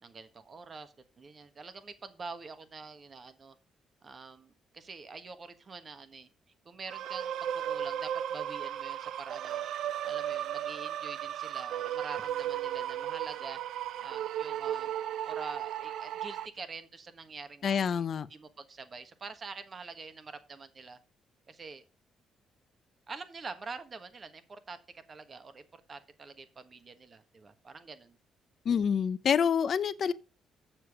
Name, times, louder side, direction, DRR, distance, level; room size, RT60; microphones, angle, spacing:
voice 1, 0.0-3.6 4.0-6.3 6.6-9.7 10.0-13.6 14.0-14.9 15.2-18.0 18.3-21.0 21.5-21.8 23.1-24.8 25.1-28.2, right 4 dB, 40° right, 1.4 m, -46 dB
sound 1, 6.9-16.5, right 11 dB, 75° right, 0.5 m, -35 dB
voice 2, 17.6-18.3 28.6-30.1, left 7 dB, 55° left, 0.7 m, -27 dB
7.3 x 7.0 x 4.9 m
cardioid pair, 90°, 0 cm